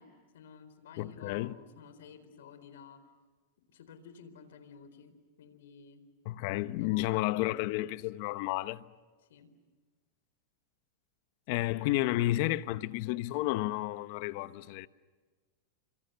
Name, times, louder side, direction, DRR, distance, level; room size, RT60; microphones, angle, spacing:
voice 1, 0.0-3.0 3.7-6.0 6.8-7.4 9.3-9.5 11.5-11.8 14.3-14.5, left 6 dB, 85° left, 4.2 m, -53 dB
voice 2, 1.0-1.5 6.2-8.8 11.5-14.9, left 17 dB, 55° left, 1.0 m, -31 dB
30.0 x 26.0 x 6.9 m
supercardioid pair, 140°, 0 cm